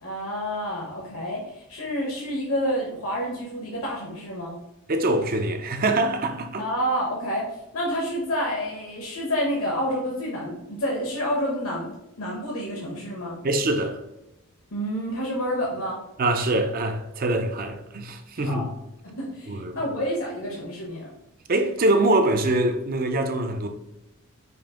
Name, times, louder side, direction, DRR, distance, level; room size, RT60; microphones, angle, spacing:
voice 1, 0.0-4.5 6.6-13.4 14.7-16.0 18.4-18.7 19.0-21.1, equal, 65° left, 0.9 m, -29 dB
voice 2, 4.9-6.7 13.4-14.0 16.2-18.7 19.5-19.8 21.5-23.7, right 2 dB, 40° right, 0.5 m, -24 dB
5.3 x 2.5 x 3.7 m
head